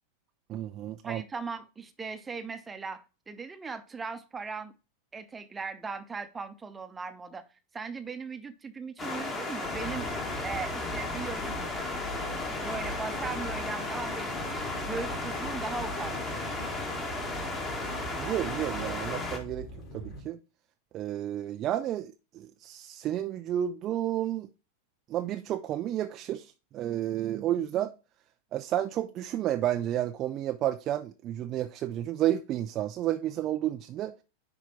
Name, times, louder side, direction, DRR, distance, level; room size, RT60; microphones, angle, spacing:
voice 1, 0.5-1.2 18.2-19.7 19.9-20.4 20.9-24.5 25.1-27.9 28.5-34.2, right 12 dB, 35° right, 0.5 m, -31 dB
voice 2, 1.0-4.7 5.1-7.4 7.7-10.1 10.4-11.7 12.5-16.5, right 4 dB, 15° right, 0.9 m, -38 dB
sound 1, 9.0-19.4, left 2 dB, 20° left, 1.8 m, -34 dB
sound 2, 9.6-20.2, equal, 40° left, 3.7 m, -42 dB
10.0 x 3.5 x 4.6 m
figure-of-eight pair, 90°, 0 cm